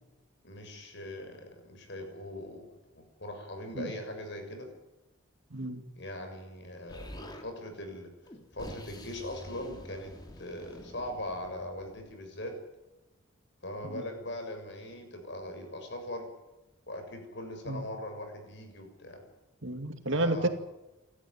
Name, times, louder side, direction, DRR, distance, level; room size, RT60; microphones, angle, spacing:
voice 1, 0.4-2.7 2.9-4.7 6.0-8.1 8.5-12.5 13.6-16.3 16.9-19.2 20.1-20.5, left 1 dB, 55° left, 5 dB, 7.0 m, -40 dB
voice 2, 5.5-5.8 13.9-14.0 17.7-17.8 19.6-20.5, right 1 dB, 60° right, 7 dB, 2.4 m, -31 dB
Explosion, 6.9-7.5 8.2-12.1, left 1 dB, 20° left, 2.9 m, -47 dB
29.0 x 13.5 x 9.5 m, 1.0 s
head